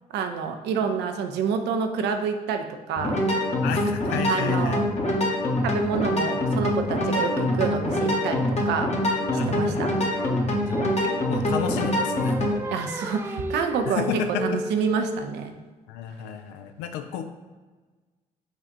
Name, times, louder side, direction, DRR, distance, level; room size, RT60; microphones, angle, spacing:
voice 1, 0.1-3.2 4.3-4.8 5.6-8.9 9.4-9.9 12.7-14.0 14.4-15.6, right 6 dB, 65° right, 6 dB, 0.5 m, -28 dB
sound 1, 3.0-12.6, left 1 dB, 35° left, 1.0 m, -25 dB
voice 2, 3.6-4.8 9.3-10.0 10.6-12.4 13.9-14.5 15.9-17.2, left 8 dB, 70° left, 7 dB, 0.4 m, -31 dB
Singing, 10.2-15.4, right 1 dB, 10° right, 0.4 m, -34 dB
5.2 x 2.5 x 3.9 m, 1.3 s
hypercardioid pair, 40°, 19 cm